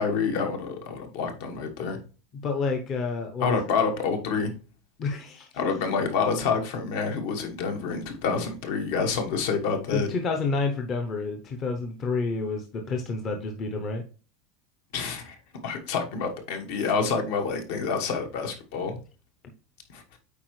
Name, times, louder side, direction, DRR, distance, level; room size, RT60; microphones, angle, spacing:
voice 1, 0.0-2.0 3.4-4.5 5.6-10.1 14.9-15.4 15.6-18.9 19.9-20.0, left 5 dB, 60° left, 5 dB, 1.3 m, -28 dB
voice 2, 2.4-3.8 5.0-5.5 9.9-14.0, left 4 dB, 25° left, 4 dB, 0.7 m, -29 dB
8.4 x 4.3 x 3.2 m, 0.35 s
supercardioid pair, 175°, 0 cm